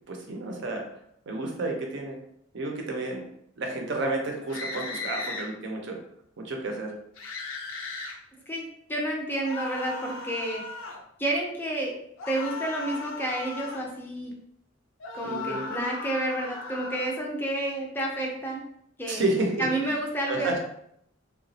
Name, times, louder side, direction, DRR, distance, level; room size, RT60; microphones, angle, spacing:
voice 1, 0.1-0.9 1.3-2.2 2.5-3.2 3.6-6.0 6.4-7.0 15.2-15.7 19.1-20.0 20.3-20.6, right 2 dB, 65° right, 1 dB, 0.6 m, -31 dB
sound 1, 4.5-5.5 7.2-8.2 9.4-11.0 12.2-13.9 15.0-17.1, left 3 dB, 75° left, 0.5 m, -37 dB
voice 2, 8.5-10.6 11.2-11.9 12.3-14.3 15.1-18.6 19.0-19.2 19.6-20.6, right 1 dB, 10° left, 0 dB, 0.5 m, -30 dB
2.9 x 2.3 x 2.7 m, 0.71 s
head